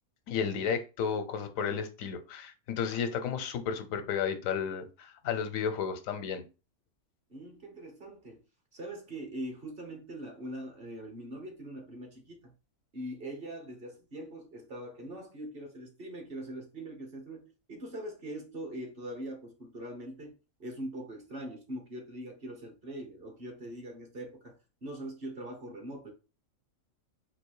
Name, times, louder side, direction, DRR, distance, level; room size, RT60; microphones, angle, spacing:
voice 1, 0.3-6.4, left 7 dB, 90° left, 1.1 m, -33 dB
voice 2, 7.3-8.4 8.7-12.5 12.9-20.3 20.6-24.5 24.8-26.1, right 1 dB, 45° right, 1.3 m, -42 dB
4.0 x 2.8 x 4.6 m
omnidirectional pair, 1.4 m